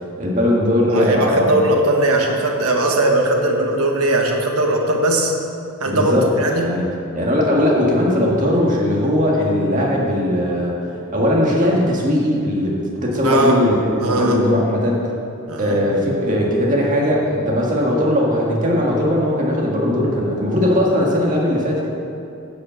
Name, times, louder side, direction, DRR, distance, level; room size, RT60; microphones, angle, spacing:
voice 1, 0.2-1.5 5.9-6.9 7.1-10.8 11.1-15.1 15.6-21.9, left 1 dB, 35° right, -3 dB, 1.7 m, -19 dB
voice 2, 0.9-5.3 5.8-6.7 13.2-13.6 14.0-14.4 15.5-15.8, right 1 dB, 85° right, 1 dB, 1.3 m, -19 dB
10.5 x 5.3 x 7.6 m, 2.6 s
head